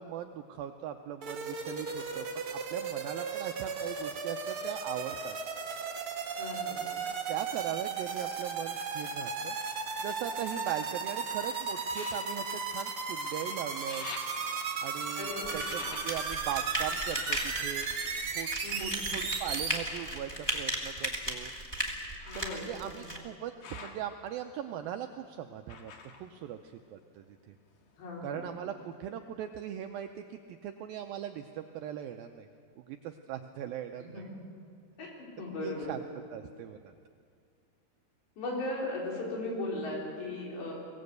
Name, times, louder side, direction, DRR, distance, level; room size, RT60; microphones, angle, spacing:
voice 1, 0.0-2.3 2.7-5.4 7.0-14.1 14.8-18.0 18.3-21.5 22.3-27.6 28.2-32.5 32.8-34.3 35.6-36.0 36.3-36.9, right 10 dB, 85° right, 6 dB, 2.0 m, -40 dB
sound 1, 1.2-19.8, right 5 dB, 50° right, 1.7 m, -36 dB
voice 2, 6.4-6.9 15.2-15.6 18.6-19.1 22.3-23.1 28.0-28.5 34.0-34.3 35.0-36.0 38.4-40.7, left 2 dB, 80° left, -2 dB, 6.6 m, -37 dB
sound 2, 9.7-11.1 11.9-13.4 13.7-18.8 19.5-27.3 27.6-28.5 28.9-29.0, left 5 dB, 55° left, 2.8 m, -50 dB
sound 3, 15.4-23.2, right 1 dB, 10° left, 1.2 m, -36 dB
23.5 x 18.0 x 8.1 m, 2.3 s
omnidirectional pair, 5.0 m